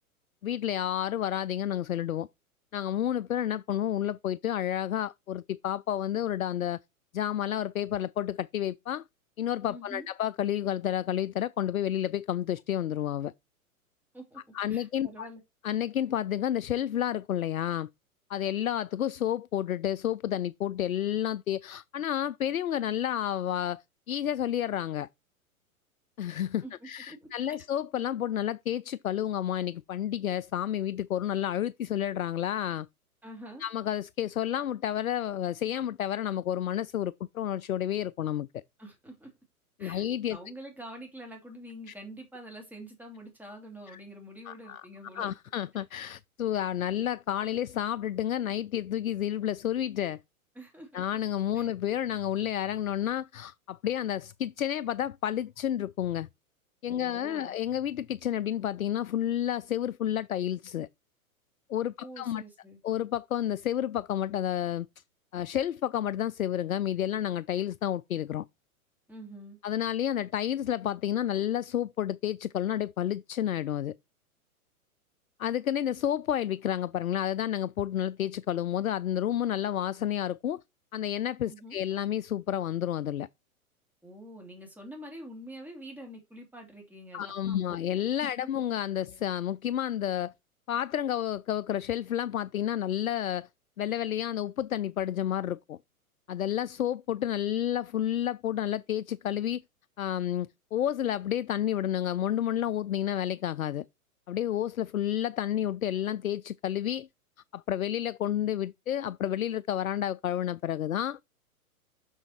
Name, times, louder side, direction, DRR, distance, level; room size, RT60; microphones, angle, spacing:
voice 1, 0.4-2.3 2.7-6.8 7.1-9.0 9.4-13.3 14.5-15.3 15.6-17.9 18.3-25.1 26.2-32.9 33.6-38.6 39.8-40.4 41.9-42.0 44.5-44.8 45.1-50.2 50.9-56.3 56.8-60.9 61.7-62.4 62.8-64.9 65.3-68.4 69.6-73.9 75.4-80.6 80.9-83.3 87.1-90.3 90.7-93.5 93.8-95.8 96.3-99.6 100.0-103.8 104.3-107.1 107.5-111.2, left 11 dB, 70° left, 0.5 m, -30 dB
voice 2, 9.7-10.1 14.1-14.4 14.7-15.4 26.6-27.5 33.2-33.6 38.8-39.3 39.8-40.0 40.3-45.3 45.7-45.8 50.5-51.0 51.5-51.7 56.9-57.6 62.0-62.8 69.1-69.6 81.5-81.8 84.0-87.6 88.2-88.5, right 1 dB, 5° right, 2.8 m, -46 dB
6.3 x 6.2 x 4.4 m
figure-of-eight pair, 105°, 44 cm